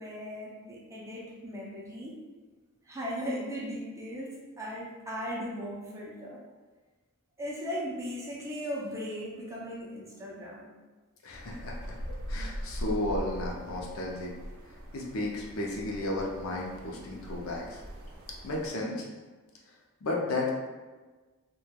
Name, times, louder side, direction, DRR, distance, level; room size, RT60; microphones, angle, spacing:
voice 1, 0.0-2.2 2.8-6.4 7.4-10.7, equal, 15° right, -4 dB, 0.4 m, -37 dB
voice 2, 11.2-12.0 12.3-14.3 14.9-17.8 18.4-19.1 20.0-20.5, left 2 dB, 70° left, -2 dB, 0.5 m, -33 dB
sound 1, 11.3-18.7, equal, 75° right, 0.4 m, -41 dB
3.0 x 2.2 x 2.2 m, 1.3 s
head